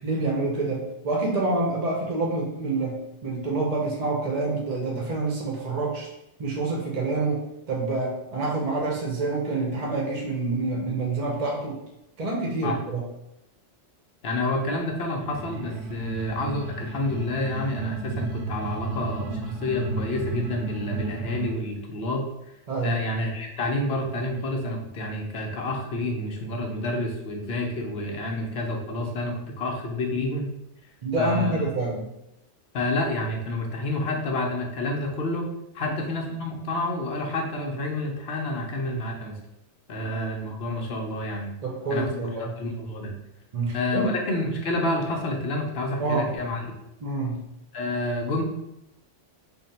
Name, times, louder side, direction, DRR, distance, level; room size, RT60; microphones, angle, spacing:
voice 1, 0.0-6.1 6.4-11.8 12.2-13.0 15.9-16.0 22.7-23.0 31.0-32.1 35.8-36.0 39.9-40.0 41.6-42.6 43.5-44.1 46.0-46.3 47.0-47.4, right 3 dB, 40° right, -1 dB, 0.7 m, -27 dB
voice 2, 14.2-22.3 22.8-30.5 31.2-31.5 32.7-35.5 35.7-39.4 39.9-41.5 41.9-42.1 42.6-43.1 43.7-46.6 47.7-48.4, left 2 dB, 60° left, 1 dB, 0.9 m, -29 dB
sound 1, 15.3-21.6, right 3 dB, 85° right, 0.9 m, -33 dB
3.6 x 2.1 x 4.1 m, 0.87 s
omnidirectional pair, 1.2 m